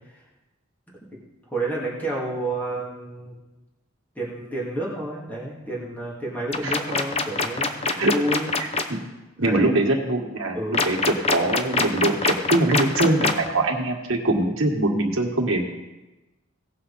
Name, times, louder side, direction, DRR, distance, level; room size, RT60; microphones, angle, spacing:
voice 1, 1.5-3.4 4.2-8.5 9.4-9.7 10.5-10.9, right 1 dB, 10° left, -6 dB, 2.4 m, -30 dB
sound 1, 6.5-8.8 10.7-13.5, left 4 dB, 30° left, 0.7 m, -23 dB
voice 2, 8.6-9.0 9.4-15.7, right 2 dB, 80° right, 1 dB, 1.7 m, -23 dB
17.5 x 6.3 x 4.2 m, 1.1 s
head